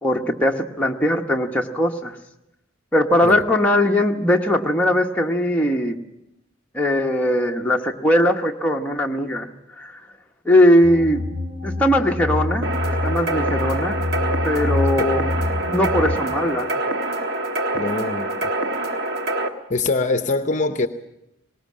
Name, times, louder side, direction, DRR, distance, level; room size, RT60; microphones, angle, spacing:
voice 1, 0.0-2.2 2.9-6.0 6.7-9.5 9.8-9.9 10.4-11.2 11.6-14.0 14.4-15.3 15.7-16.7, left 1 dB, 5° left, 0 dB, 1.0 m, -20 dB
sound 1, 10.8-16.2, left 2 dB, 35° right, 1.9 m, -26 dB
sound 2, 12.6-19.5, right 2 dB, 50° right, 1.4 m, -25 dB
voice 2, 17.7-18.5 19.7-20.9, left 3 dB, 35° left, 8 dB, 0.7 m, -23 dB
19.0 x 19.0 x 7.4 m, 0.88 s
head